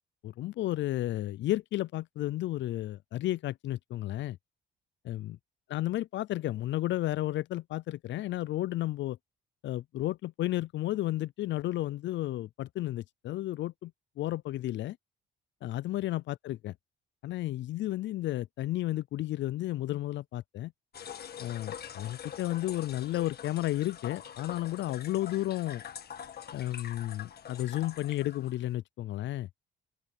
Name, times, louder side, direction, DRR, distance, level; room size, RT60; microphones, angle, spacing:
voice 1, 0.2-4.4 5.0-5.4 5.7-9.2 9.6-13.9 14.2-15.0 15.6-16.7 17.2-20.7 21.4-25.8 26.5-29.5, left 15 dB, 70° left, 0.4 m, -32 dB
sound 1, 20.9-28.8, left 8 dB, 50° left, 1.6 m, -45 dB
open air
cardioid pair, 90°, 20 cm